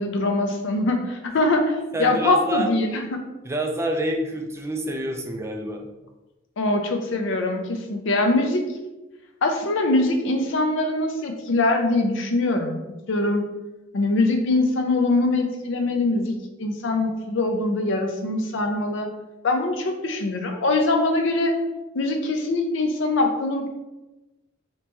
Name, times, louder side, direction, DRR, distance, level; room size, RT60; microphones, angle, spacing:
voice 1, 0.0-3.2 6.6-8.6 9.4-12.8 13.1-13.5 13.9-19.1 19.4-21.5 21.9-23.7, left 2 dB, 70° left, 4 dB, 0.5 m, -23 dB
voice 2, 1.9-2.7 3.4-5.9, right 1 dB, 15° right, 3 dB, 0.3 m, -27 dB
3.3 x 2.9 x 2.9 m, 1.0 s
head